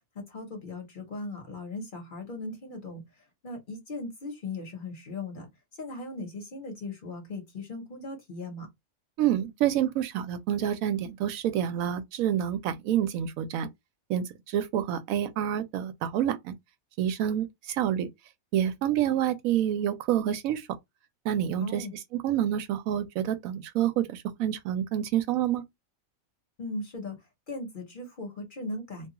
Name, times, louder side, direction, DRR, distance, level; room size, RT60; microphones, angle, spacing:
voice 1, 0.1-8.7 21.6-21.9 26.6-27.2 27.5-29.1, left 2 dB, 45° left, 0.9 m, -38 dB
voice 2, 9.2-13.7 14.1-16.5 17.0-18.1 18.5-20.7 21.2-21.8 22.1-25.6, right 10 dB, 85° right, 1.0 m, -28 dB
2.5 x 2.3 x 2.8 m
omnidirectional pair, 1.4 m